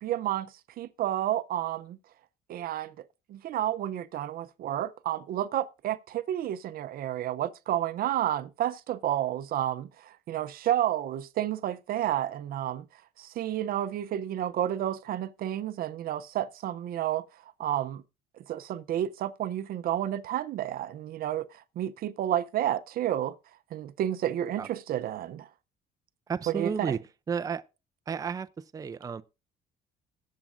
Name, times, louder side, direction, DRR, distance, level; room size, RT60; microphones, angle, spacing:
voice 1, 0.0-2.0 2.5-3.0 3.3-12.9 13.2-17.2 17.6-18.0 18.4-23.4 23.7-25.5 26.5-27.0, right 12 dB, 60° right, 0.6 m, -31 dB
voice 2, 26.3-27.0 27.3-27.6 28.1-29.2, right 6 dB, 20° right, 0.4 m, -32 dB
20.0 x 7.4 x 2.5 m
cardioid pair, 110°, 17 cm